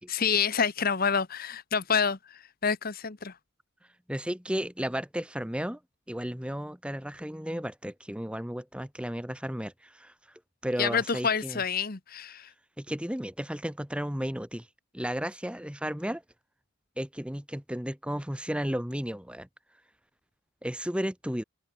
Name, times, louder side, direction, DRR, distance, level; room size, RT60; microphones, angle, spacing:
voice 1, 0.1-3.3 10.8-12.5, left 6 dB, 40° left, 1.0 m, -28 dB
voice 2, 4.1-5.8 6.1-10.1 10.6-11.6 12.8-14.7 14.9-16.2 17.0-19.5 20.6-21.4, equal, 5° right, 1.5 m, -33 dB
open air
head